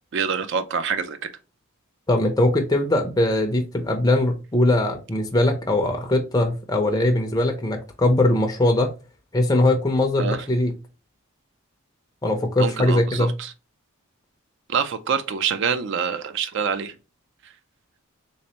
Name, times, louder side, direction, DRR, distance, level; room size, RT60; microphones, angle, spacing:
voice 1, 0.1-1.3 10.2-10.4 12.6-13.5 14.7-16.9, right 6 dB, 55° right, 0.4 m, -26 dB
voice 2, 2.1-8.9 9.3-10.7 12.2-13.3, left 1 dB, 15° left, 0.5 m, -21 dB
3.3 x 3.2 x 2.8 m
head